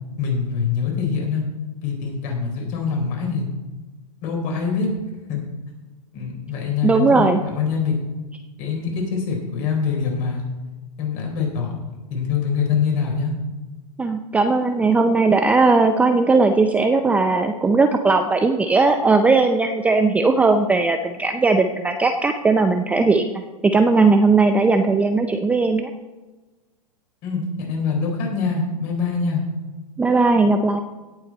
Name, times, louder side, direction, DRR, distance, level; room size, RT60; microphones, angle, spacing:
voice 1, 0.2-1.4 1.8-3.5 4.2-4.9 5.3-5.4 6.1-7.9 8.6-10.4 11.0-11.7 12.1-13.3 27.2-29.4, left 5 dB, 40° left, 0 dB, 4.2 m, -24 dB
voice 2, 6.8-7.4 14.0-25.9 30.0-30.8, right 3 dB, 5° right, 6 dB, 0.4 m, -18 dB
17.5 x 7.1 x 4.3 m, 1.2 s
hypercardioid pair, 120°, 20 cm